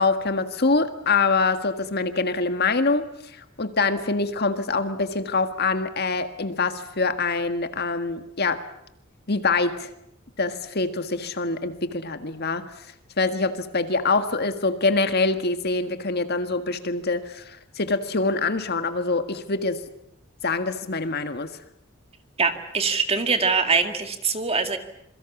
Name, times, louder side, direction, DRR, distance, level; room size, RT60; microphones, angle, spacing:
voice 1, 0.0-8.6 9.3-9.9 10.4-12.9 13.2-19.8 20.4-21.5, left 3 dB, 50° left, 8 dB, 1.7 m, -25 dB
voice 2, 22.4-24.8, right 4 dB, 30° right, 7 dB, 2.2 m, -23 dB
27.0 x 23.0 x 7.3 m, 0.78 s
head